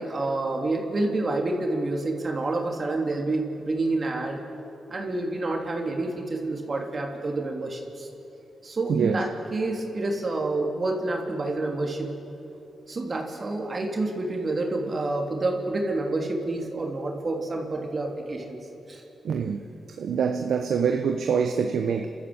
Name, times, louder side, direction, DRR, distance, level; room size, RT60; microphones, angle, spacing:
voice 1, 0.0-4.4 4.9-8.1 8.6-12.1 12.9-18.6 18.9-19.0, right 2 dB, 45° right, 1 dB, 3.3 m, -28 dB
voice 2, 8.9-9.2 19.2-19.6 20.0-22.1, right 6 dB, 80° right, 6 dB, 0.9 m, -25 dB
28.5 x 13.5 x 8.0 m, 3.0 s
cardioid pair, 55°, 0 cm